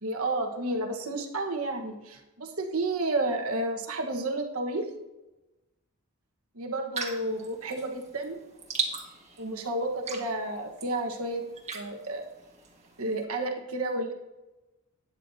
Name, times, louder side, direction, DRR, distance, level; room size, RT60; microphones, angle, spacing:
voice 1, 0.0-4.9 6.5-8.4 9.4-11.4 11.7-12.2 13.0-14.1, right 2 dB, 80° right, 2 dB, 1.3 m, -31 dB
sound 1, 6.9-13.2, right 5 dB, 30° right, 1.6 m, -39 dB
12.0 x 9.8 x 2.8 m, 1.0 s
head